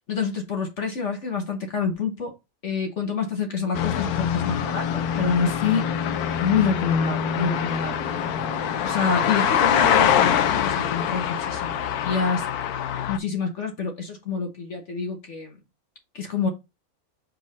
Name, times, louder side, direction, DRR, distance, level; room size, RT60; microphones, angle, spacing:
voice 1, 0.1-2.3 2.6-5.9 6.4-8.2 8.8-12.5 13.1-15.6 16.1-16.5, left 5 dB, 55° left, 1.4 m, -27 dB
sound 1, 3.7-13.2, left 8 dB, 85° left, 1.2 m, -24 dB
5.4 x 4.4 x 4.0 m
omnidirectional pair, 1.6 m